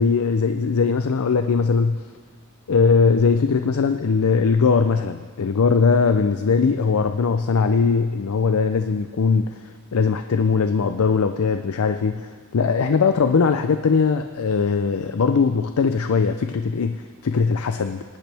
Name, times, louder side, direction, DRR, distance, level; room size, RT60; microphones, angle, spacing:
voice 1, 0.0-2.0 2.7-18.0, left 5 dB, 75° left, 8 dB, 0.5 m, -20 dB
18.5 x 10.5 x 3.4 m, 1.5 s
head